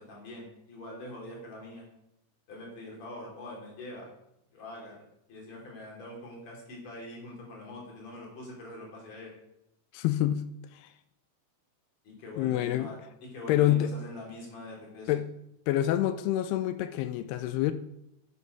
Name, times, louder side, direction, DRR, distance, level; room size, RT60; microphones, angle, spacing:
voice 1, 0.0-1.9 2.5-4.1 4.5-9.3 12.0-15.1, left 2 dB, 50° left, 4.4 m, -44 dB
voice 2, 9.9-10.4 12.4-12.9 13.5-13.9 15.1-15.2 15.7-17.7, left 13 dB, 80° left, 2.4 m, -26 dB
9.5 x 6.9 x 6.5 m
omnidirectional pair, 4.9 m